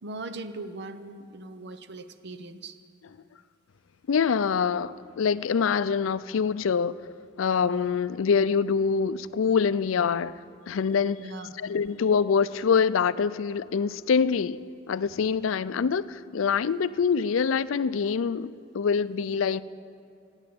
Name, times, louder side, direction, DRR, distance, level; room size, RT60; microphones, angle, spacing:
voice 1, 0.0-2.8 11.2-11.6, right 2 dB, 60° right, 11 dB, 0.7 m, -39 dB
voice 2, 4.1-7.0 7.4-10.4 10.7-11.2 11.6-14.6 14.9-19.6, left 6 dB, 75° left, 16 dB, 0.4 m, -25 dB
16.5 x 9.0 x 8.5 m, 2.4 s
head